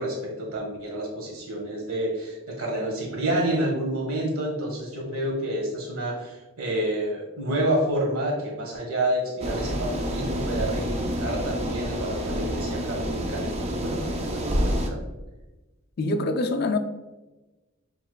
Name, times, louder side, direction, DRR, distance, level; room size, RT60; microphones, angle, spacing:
voice 1, 0.0-15.0, right 1 dB, 75° right, -1 dB, 1.4 m, -29 dB
sound 1, 9.4-14.9, equal, 30° right, 0.4 m, -28 dB
voice 2, 16.0-16.8, left 2 dB, 45° left, 7 dB, 0.4 m, -24 dB
6.7 x 3.0 x 2.2 m, 1.1 s
head